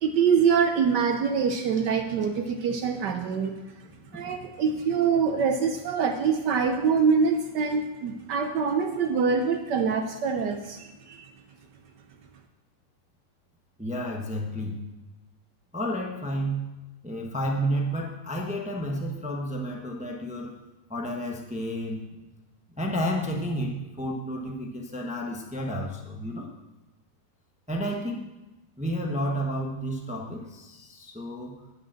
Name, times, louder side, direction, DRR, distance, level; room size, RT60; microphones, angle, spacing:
voice 1, 0.0-3.6 4.1-11.3, right 6 dB, 70° right, 6 dB, 1.1 m, -25 dB
voice 2, 13.8-14.8 15.7-16.6 17.0-20.6 20.9-22.1 22.8-26.5 27.7-28.2 28.8-31.6, equal, 10° right, 0 dB, 0.5 m, -31 dB
10.5 x 5.3 x 7.4 m, 1.1 s
omnidirectional pair, 2.3 m